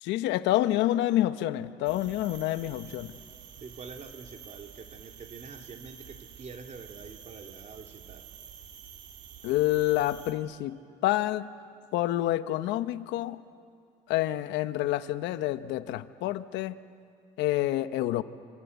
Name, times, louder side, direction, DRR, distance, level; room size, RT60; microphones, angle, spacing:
voice 1, 0.0-3.2 9.4-11.5 11.9-13.4 14.1-16.8 17.4-18.2, left 14 dB, 80° left, 12 dB, 0.9 m, -28 dB
sound 1, 1.8-10.3, right 8 dB, 75° right, 2.5 m, -48 dB
voice 2, 3.6-8.3, right 4 dB, 40° right, 4 dB, 2.6 m, -46 dB
26.0 x 26.0 x 8.2 m, 2.3 s
supercardioid pair, 85°, 18 cm